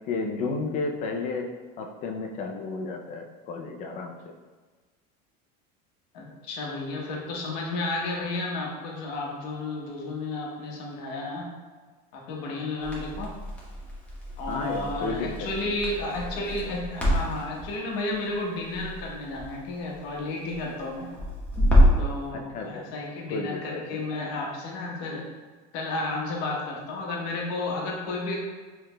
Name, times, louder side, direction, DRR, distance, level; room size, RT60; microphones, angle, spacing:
voice 1, 0.1-1.5 1.8-4.2 14.5-15.7 22.3-22.8 23.3-24.0, left 3 dB, 35° left, 3 dB, 0.5 m, -32 dB
voice 2, 6.1-11.5 12.1-13.3 14.4-21.1 22.0-25.2 25.7-28.4, left 2 dB, 60° left, -1 dB, 1.0 m, -32 dB
Crackle, 12.8-22.1, equal, 5° left, 0.8 m, -27 dB
4.6 x 3.4 x 2.2 m, 1.4 s
supercardioid pair, 145°, 20 cm